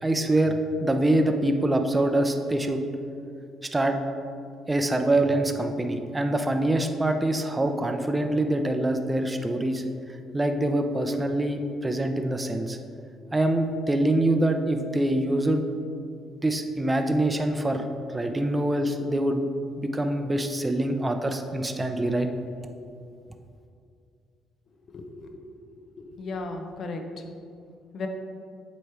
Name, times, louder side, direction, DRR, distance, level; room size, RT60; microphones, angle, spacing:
voice 1, 0.0-2.8 3.7-4.0 4.7-9.8 10.3-12.8 13.3-15.6 16.4-17.9 18.1-19.5 19.8-22.3, right 1 dB, 20° right, 6 dB, 0.5 m, -25 dB
voice 2, 24.9-25.4 26.0-27.0 27.9-28.1, left 3 dB, 60° left, 5 dB, 0.7 m, -35 dB
7.9 x 3.1 x 4.7 m, 2.4 s
supercardioid pair, 65°, 0 cm